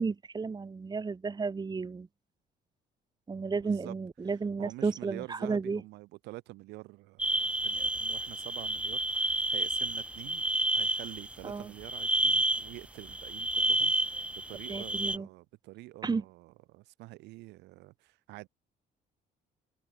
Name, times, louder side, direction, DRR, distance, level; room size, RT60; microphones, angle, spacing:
voice 1, 0.0-2.1 3.3-5.8 11.4-11.7 14.7-15.3 16.0-16.2, right 4 dB, 25° right, 3.0 m, -32 dB
voice 2, 3.5-3.9 4.2-10.4 10.7-14.2 14.5-18.5, right 20 dB, 90° right, 4.7 m, -47 dB
sound 1, 7.2-11.3 11.8-15.2, right 1 dB, 5° right, 1.1 m, -30 dB
cardioid pair, 110°, 17 cm